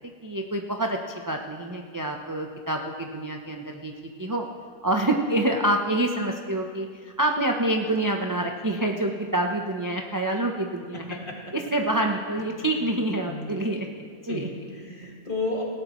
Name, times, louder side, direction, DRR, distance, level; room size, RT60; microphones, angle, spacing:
voice 1, 0.2-3.9 4.2-4.4 4.8-11.2 11.5-14.5, right 1 dB, 25° right, 2 dB, 0.5 m, -27 dB
voice 2, 14.3-15.6, left 2 dB, 35° left, -3 dB, 2.4 m, -32 dB
17.5 x 17.0 x 3.1 m, 2.1 s
omnidirectional pair, 1.5 m